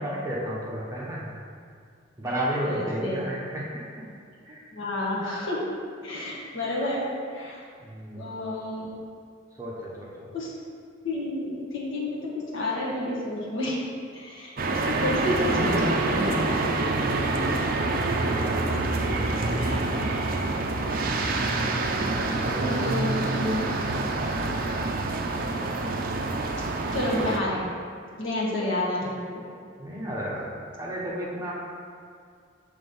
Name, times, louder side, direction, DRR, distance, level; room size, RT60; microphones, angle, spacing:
voice 1, 0.0-1.3 2.2-3.6 4.4-4.7 7.8-8.3 9.6-10.3 18.0-19.8 22.4-22.9 23.9-24.1 29.8-30.5 30.7-31.5, right 1 dB, 15° right, -6 dB, 0.9 m, -33 dB
voice 2, 2.6-3.2 4.7-5.6 6.0-7.6 8.1-8.9 10.3-10.5 11.0-13.8 14.1-15.8 16.1-16.8 19.5-19.8 22.6-24.1 26.9-27.7 28.2-29.4, left 1 dB, 70° left, -5 dB, 1.3 m, -30 dB
sound 1, 14.6-27.4, right 2 dB, 45° right, 0.4 m, -26 dB
6.0 x 3.4 x 5.4 m, 2.2 s
head